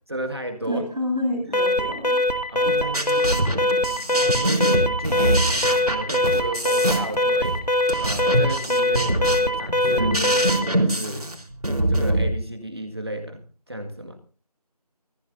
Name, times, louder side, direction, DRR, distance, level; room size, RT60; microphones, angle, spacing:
voice 1, 0.1-0.8 2.5-3.4 4.1-7.6 8.0-11.3 11.9-13.4 13.7-14.2, right 1 dB, 40° right, 5 dB, 1.9 m, -33 dB
voice 2, 0.6-2.2 2.8-3.4, left 1 dB, ahead, -23 dB, 2.0 m, -29 dB
Alarm, 1.5-10.7, left 1 dB, 80° left, 2.1 m, -22 dB
sound 1, 2.7-12.2, right 1 dB, 65° right, 4.0 m, -24 dB
24.0 x 15.0 x 2.7 m, 0.37 s
figure-of-eight pair, 175°, 20 cm